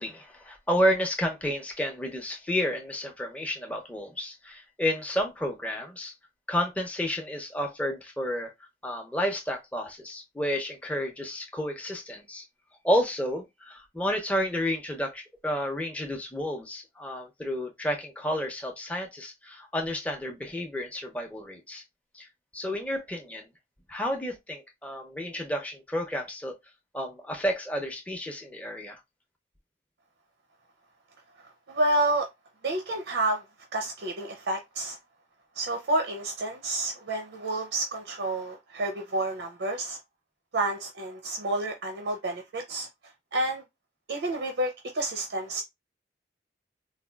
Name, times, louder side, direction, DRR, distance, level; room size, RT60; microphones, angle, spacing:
voice 1, 0.0-6.1 6.5-8.5 8.8-12.4 12.8-21.8 22.1-22.3 22.5-23.5 23.9-26.6 26.9-29.0, equal, 10° left, 0.5 m, -31 dB
voice 2, 31.7-32.3 32.6-33.4 33.7-35.0 35.6-40.0 40.5-42.9 43.3-43.6 44.1-45.6, right 2 dB, 85° right, 0.5 m, -29 dB
4.0 x 2.3 x 2.2 m
head